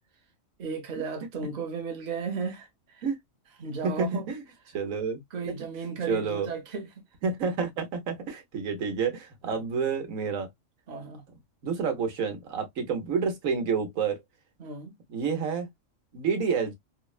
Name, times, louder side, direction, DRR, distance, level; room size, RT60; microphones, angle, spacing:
voice 1, 0.6-3.1 3.6-4.3 5.3-6.9 9.4-9.6 10.9-11.2 12.8-12.9 14.6-14.9, right 5 dB, 35° right, 0.8 m, -35 dB
voice 2, 3.8-4.4 4.7-5.2 5.5-5.6 6.1-6.5 7.2-10.5 11.6-14.2 15.1-15.7 16.1-16.7, right 5 dB, 85° right, 1.3 m, -29 dB
4.1 x 2.1 x 2.3 m
omnidirectional pair, 1.4 m